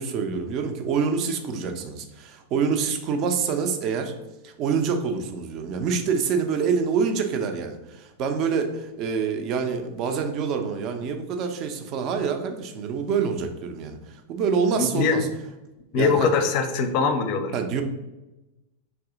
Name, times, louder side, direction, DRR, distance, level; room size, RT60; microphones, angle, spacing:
voice 1, 0.0-4.1 4.4-15.3 15.9-16.3 17.5-17.8, right 6 dB, 40° right, 5 dB, 0.5 m, -26 dB
voice 2, 14.8-15.2 15.9-17.5, left 5 dB, 45° left, 7 dB, 0.5 m, -22 dB
3.4 x 2.7 x 3.7 m, 1.0 s
figure-of-eight pair, 90°, 0 cm